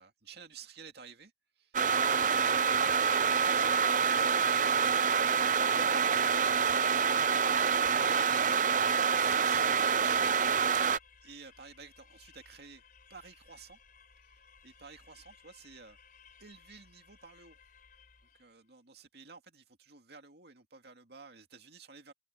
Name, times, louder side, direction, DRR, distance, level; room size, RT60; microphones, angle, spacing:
voice 1, 0.0-5.3 5.8-6.7 7.7-8.6 9.1-10.5 11.2-12.8 13.1-13.8 14.6-16.0 16.4-17.6 18.3-22.1, right 5 dB, 60° right, 2.5 m, -52 dB
sound 1, 1.7-11.0, right 6 dB, 45° right, 0.5 m, -27 dB
sound 2, 10.0-18.6, left 5 dB, 50° left, 4.5 m, -60 dB
head